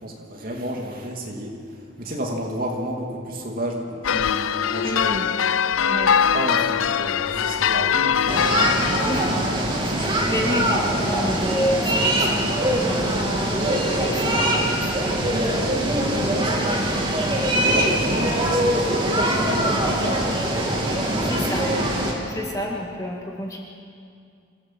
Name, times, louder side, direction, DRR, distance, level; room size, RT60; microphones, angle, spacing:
voice 1, 0.0-1.6 2.0-5.2 6.3-8.3 10.1-10.5 13.0-13.3 16.0-16.9 17.5-20.5 21.0-21.3, right 1 dB, 45° right, 0 dB, 2.9 m, -31 dB
sound 1, 4.0-9.4, left 7 dB, 80° left, 0.5 m, -22 dB
voice 2, 4.8-5.3 5.9-6.1 9.0-9.3 9.8-13.5 14.0-15.0 21.3-21.7 22.3-23.6, equal, 15° left, -1 dB, 2.2 m, -29 dB
sound 2, 8.3-22.1, right 1 dB, 25° right, 2.8 m, -22 dB
27.0 x 16.5 x 7.7 m, 2.3 s
head